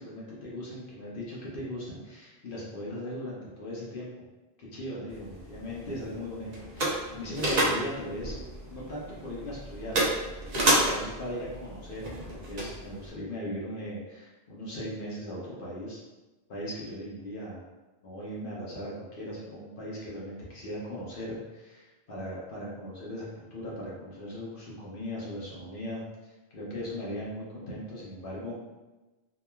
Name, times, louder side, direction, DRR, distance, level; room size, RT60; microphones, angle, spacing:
voice 1, 0.0-4.1 4.6-8.3 8.7-10.0 10.8-16.0 16.5-17.6 18.0-26.0 26.5-28.6, equal, 60° left, -6 dB, 0.8 m, -38 dB
sound 1, 5.1-13.1, right 1 dB, 50° right, 0.6 m, -31 dB
2.9 x 2.3 x 2.2 m, 1.1 s
omnidirectional pair, 1.1 m